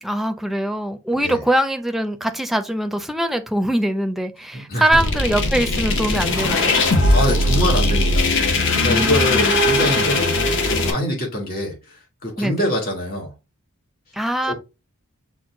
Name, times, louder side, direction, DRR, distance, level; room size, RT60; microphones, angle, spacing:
voice 1, 0.0-6.8 8.9-9.6 12.4-12.7 14.1-14.5, right 1 dB, ahead, 0.5 m, -22 dB
voice 2, 4.5-4.9 7.1-8.3 8.8-10.2 10.8-13.3 14.5-14.6, left 1 dB, 45° left, 2.4 m, -24 dB
sound 1, 4.9-10.9, left 2 dB, 60° left, 0.9 m, -19 dB
6.2 x 2.2 x 3.7 m
head